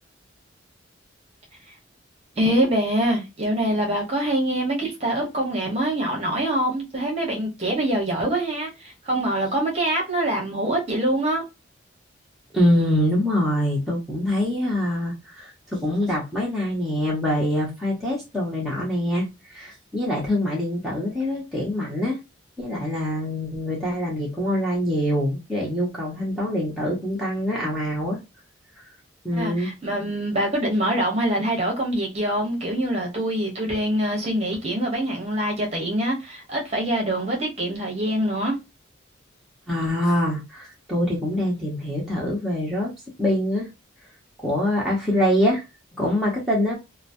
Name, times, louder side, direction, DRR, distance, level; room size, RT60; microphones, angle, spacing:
voice 1, 2.4-11.4 29.4-38.6, right 1 dB, 30° right, 1.0 m, -24 dB
voice 2, 12.5-22.2 22.6-28.2 29.2-29.7 39.7-42.9 43.2-43.7 44.4-45.6 46.0-46.7, left 1 dB, ahead, 0.8 m, -24 dB
3.0 x 2.1 x 2.5 m
head